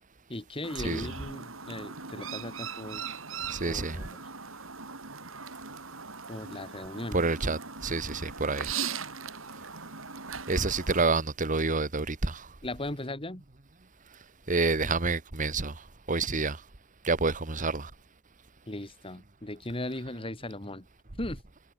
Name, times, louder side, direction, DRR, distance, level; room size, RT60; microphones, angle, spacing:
voice 1, 0.3-3.0 3.6-4.2 6.3-7.2 12.6-13.4 18.7-20.9 21.2-21.4, left 1 dB, 25° left, 2.2 m, -38 dB
Chirp tweet, 0.6-11.0, right 6 dB, 75° right, 6.1 m, -40 dB
voice 2, 3.5-4.1 7.1-8.7 10.5-12.5 14.5-15.7 16.1-16.6 17.0-17.9, right 3 dB, 40° right, 1.5 m, -28 dB
head